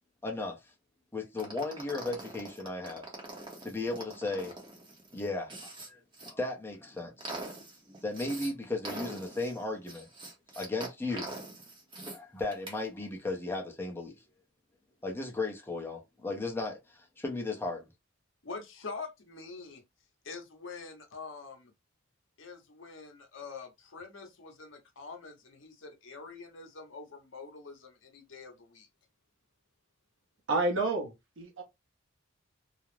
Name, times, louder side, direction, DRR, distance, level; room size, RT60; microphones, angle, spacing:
voice 1, 0.2-0.6 1.1-3.1 3.6-4.5 5.1-6.0 6.3-7.3 8.0-10.1 10.6-11.3 12.1-14.1 15.0-17.9, left 2 dB, 10° left, 0.5 m, -35 dB
sound 1, 1.4-6.3 6.8-8.5 8.8-12.2 12.5-12.8, right 2 dB, 25° right, 0.7 m, -43 dB
voice 2, 18.4-19.8 20.2-21.7 22.4-28.9, left 4 dB, 60° left, 0.7 m, -45 dB
voice 3, 30.5-31.6, right 2 dB, 60° right, 0.7 m, -30 dB
2.4 x 2.0 x 3.0 m
head